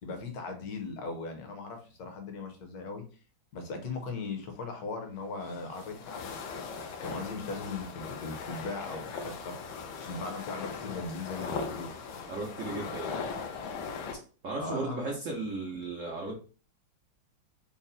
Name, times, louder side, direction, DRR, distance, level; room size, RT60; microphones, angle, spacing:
voice 1, 0.0-3.0 3.5-6.5 7.0-9.6 10.0-11.9 14.6-15.1, left 3 dB, 60° left, 5 dB, 1.1 m, -38 dB
sound 1, 5.2-14.2, left 5 dB, 85° left, 1.4 m, -39 dB
voice 2, 12.3-13.2 14.4-16.3, right 3 dB, 70° right, -2 dB, 0.7 m, -35 dB
4.0 x 2.0 x 3.9 m, 0.38 s
omnidirectional pair, 2.2 m